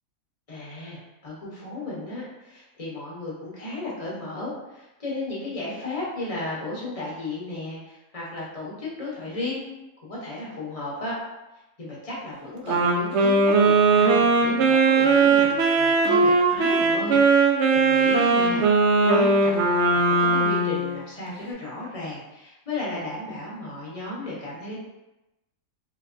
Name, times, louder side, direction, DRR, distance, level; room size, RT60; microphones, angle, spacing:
voice 1, 0.5-9.6 10.0-11.2 11.8-18.7 19.0-24.8, left 2 dB, 30° left, -6 dB, 0.8 m, -34 dB
Wind instrument woodwind instrument, 12.7-20.9, right 3 dB, 65° right, 0.7 m, -19 dB
3.2 x 3.0 x 2.5 m, 0.97 s
omnidirectional pair, 1.5 m